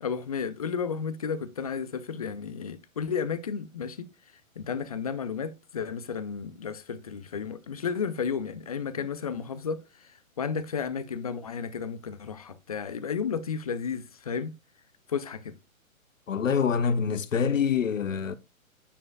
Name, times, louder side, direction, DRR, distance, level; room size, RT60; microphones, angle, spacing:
voice 1, 0.0-4.1 4.6-14.5 15.1-15.6, left 6 dB, 30° left, 0.5 m, -33 dB
voice 2, 16.3-18.4, left 6 dB, 65° left, 0.9 m, -25 dB
9.9 x 5.0 x 2.2 m
figure-of-eight pair, 125°, 42 cm